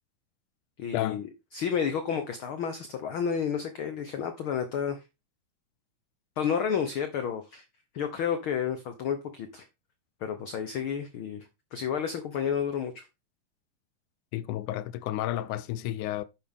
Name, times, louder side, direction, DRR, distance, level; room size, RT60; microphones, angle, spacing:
voice 1, 0.8-1.3 1.5-5.0 6.4-7.6 7.9-9.7 10.2-13.1, left 7 dB, 65° left, 1.3 m, -31 dB
voice 2, 14.3-16.2, left 13 dB, 85° left, 2.1 m, -31 dB
9.9 x 7.0 x 3.6 m
omnidirectional pair, 3.5 m